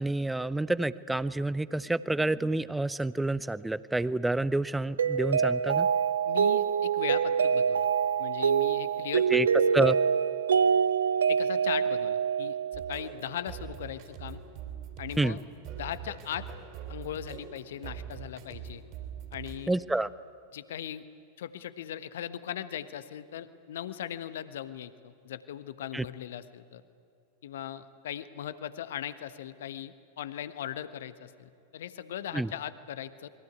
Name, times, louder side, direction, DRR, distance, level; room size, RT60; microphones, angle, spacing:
voice 1, 0.0-5.9 9.3-9.5 9.7-10.0 15.2-15.4 19.7-20.1 25.9-26.0 32.3-32.5, right 2 dB, 5° right, 18 dB, 0.7 m, -28 dB
Mallet percussion, 5.0-13.1, right 7 dB, 70° right, 0.6 m, -26 dB
voice 2, 6.2-7.9 8.2-9.4 11.3-14.4 15.0-15.4 15.8-16.5 16.9-18.8 19.3-19.8 20.5-21.0 21.4-26.8 27.4-33.3, left 10 dB, 60° left, 13 dB, 1.3 m, -39 dB
sound 1, 12.7-19.7, right 7 dB, 45° right, 4.4 m, -43 dB
28.0 x 22.0 x 9.5 m, 2.4 s
figure-of-eight pair, 90°, 0 cm